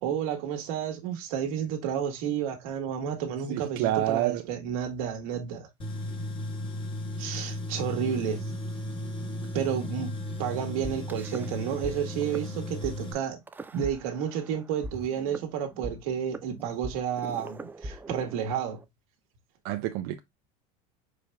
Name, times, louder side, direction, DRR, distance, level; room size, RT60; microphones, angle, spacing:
voice 1, 0.0-5.7 7.2-8.4 9.5-10.1 10.4-13.4 13.7-18.8, right 8 dB, 80° right, 1.7 m, -31 dB
voice 2, 3.5-4.4 19.6-20.2, right 14 dB, 65° right, 0.5 m, -28 dB
Tools, 5.8-13.1, left 1 dB, 30° left, 1.2 m, -35 dB
sound 1, 10.8-11.9 12.2-12.4 12.8-12.9 13.5-14.5 14.8-18.8, right 1 dB, 10° right, 0.4 m, -40 dB
4.9 x 4.8 x 2.2 m
supercardioid pair, 125°, 18 cm